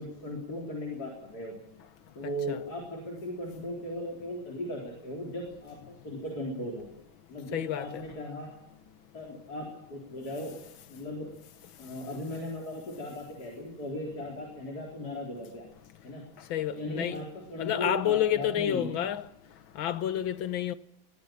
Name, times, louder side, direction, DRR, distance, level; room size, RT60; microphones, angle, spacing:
voice 1, 0.0-1.6 2.2-6.9 7.3-8.5 9.1-10.6 10.9-11.3 11.8-15.7 16.0-16.2 16.7-19.0, left 1 dB, 50° left, 4.5 m, -37 dB
voice 2, 7.5-8.0 16.5-17.2 17.6-19.2 19.8-20.7, left 11 dB, 80° left, 1.9 m, -29 dB
21.5 x 15.5 x 9.0 m
omnidirectional pair, 2.2 m